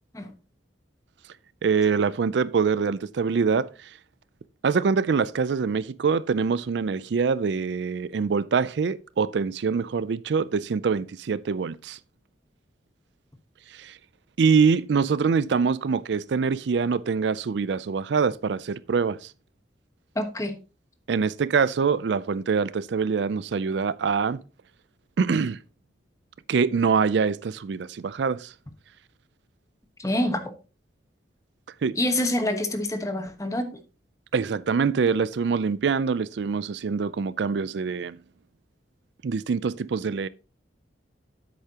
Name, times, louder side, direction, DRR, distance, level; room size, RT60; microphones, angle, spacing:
voice 1, 1.6-3.9 4.6-12.0 13.7-14.0 14.4-19.3 21.1-24.4 25.2-25.6 26.5-28.5 31.8-32.0 34.3-38.2 39.2-40.3, right 5 dB, 70° right, 0.4 m, -24 dB
voice 2, 20.1-20.5 30.0-30.5 32.0-33.7, left 1 dB, 20° left, 1.2 m, -26 dB
10.0 x 8.2 x 2.9 m
head